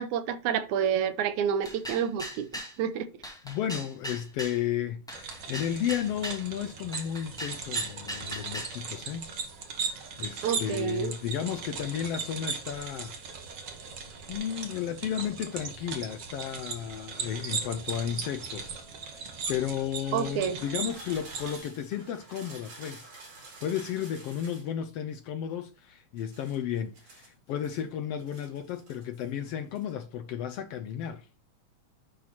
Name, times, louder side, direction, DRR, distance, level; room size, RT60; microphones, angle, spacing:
voice 1, 0.0-3.1 10.4-11.1 20.1-20.6, right 8 dB, 90° right, 2.2 m, -29 dB
sound 1, 1.6-2.8 3.2-4.6 5.1-6.4 6.9-8.8, equal, ahead, 1.6 m, -39 dB
voice 2, 3.4-9.3 9.8-13.1 13.4-13.7 14.3-23.1 23.6-31.3, left 9 dB, 75° left, 1.5 m, -33 dB
sound 2, 5.1-21.6, right 5 dB, 45° right, 1.6 m, -38 dB
sound 3, 17.5-19.5 20.3-24.7 26.2-27.8 28.2-29.3 29.6-29.9, right 2 dB, 75° right, 5.7 m, -51 dB
10.0 x 4.5 x 4.1 m
omnidirectional pair, 3.3 m